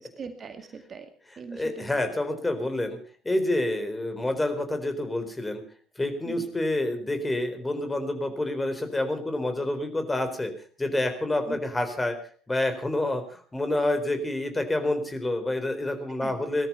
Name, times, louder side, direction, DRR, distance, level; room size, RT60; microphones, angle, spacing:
voice 1, 0.0-1.1 1.4-1.9 6.3-6.5 11.5-11.6 16.2-16.4, right 5 dB, 35° right, 8 dB, 2.1 m, -40 dB
voice 2, 1.3-3.0 3.2-5.6 6.0-10.5 10.8-12.2 12.5-16.7, left 1 dB, 15° left, 7 dB, 4.1 m, -28 dB
18.5 x 13.5 x 5.7 m, 0.43 s
figure-of-eight pair, 60°, 0 cm